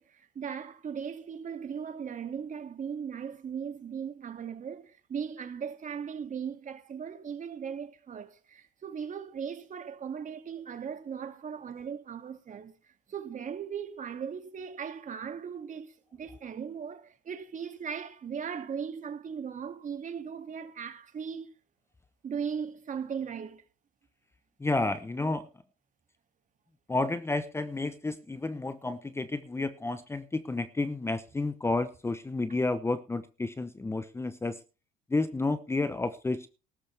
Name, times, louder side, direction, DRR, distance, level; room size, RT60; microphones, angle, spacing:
voice 1, 0.0-12.7 13.1-21.5 22.2-23.6, right 7 dB, 40° right, 2.4 m, -38 dB
voice 2, 24.6-25.5 26.9-34.6 35.1-36.5, left 2 dB, 15° left, 0.9 m, -31 dB
15.0 x 13.0 x 3.5 m
cardioid pair, 105°, 20 cm